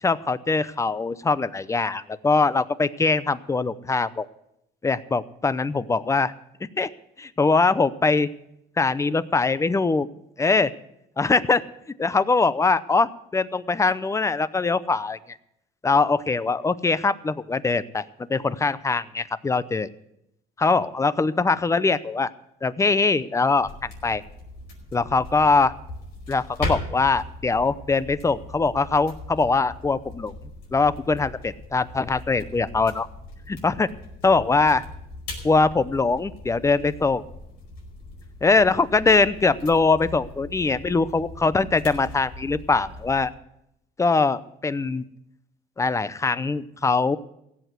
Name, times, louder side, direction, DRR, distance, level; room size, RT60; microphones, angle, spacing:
voice 1, 0.0-4.3 4.8-6.3 6.8-6.9 7.2-8.3 8.8-10.1 10.4-10.7 11.2-11.6 12.0-15.4 15.8-19.9 20.6-22.3 22.6-24.2 24.9-25.7 26.3-30.3 30.7-33.1 33.5-33.9 34.2-34.8 35.4-37.2 38.4-43.3 44.0-45.0 45.8-47.2, left 4 dB, 15° left, 16 dB, 0.6 m, -22 dB
sound 1, 23.6-43.3, left 2 dB, 80° left, 5.0 m, -39 dB
16.5 x 8.2 x 8.1 m, 0.80 s
cardioid pair, 110°, 17 cm